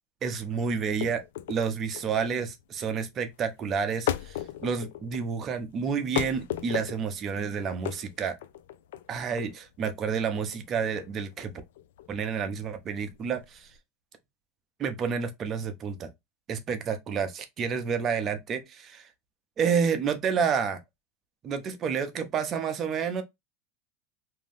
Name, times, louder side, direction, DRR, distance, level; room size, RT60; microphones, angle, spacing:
voice 1, 0.2-8.4 9.1-11.5 12.1-13.7 14.8-16.1 16.5-19.1 19.6-20.8 21.4-23.2, right 6 dB, 35° right, 0.6 m, -30 dB
sound 1, 0.8-13.8, left 11 dB, 80° left, 0.3 m, -37 dB
2.6 x 2.1 x 3.4 m
supercardioid pair, 110°, 0 cm